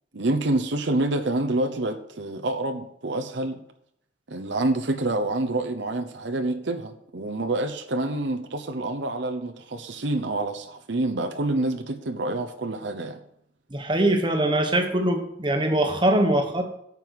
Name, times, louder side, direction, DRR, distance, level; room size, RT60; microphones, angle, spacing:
voice 1, 0.1-3.6 4.3-13.2, right 2 dB, 70° right, 0.9 m, -27 dB
voice 2, 13.7-16.6, right 1 dB, 25° right, 1.2 m, -22 dB
9.2 x 5.5 x 8.1 m
head